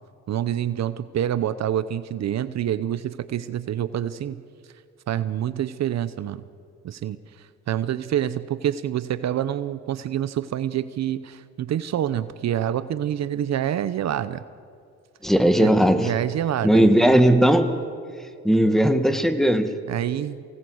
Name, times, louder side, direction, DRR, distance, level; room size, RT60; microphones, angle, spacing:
voice 1, 0.3-4.4 5.1-6.4 6.8-14.4 15.6-15.7 16.0-16.9 19.9-20.4, right 10 dB, 60° right, 14 dB, 0.8 m, -27 dB
voice 2, 15.2-16.1 16.6-17.7 18.4-19.7, equal, ahead, 8 dB, 1.8 m, -17 dB
24.0 x 18.5 x 8.0 m, 2.3 s
cardioid pair, 90°, 30 cm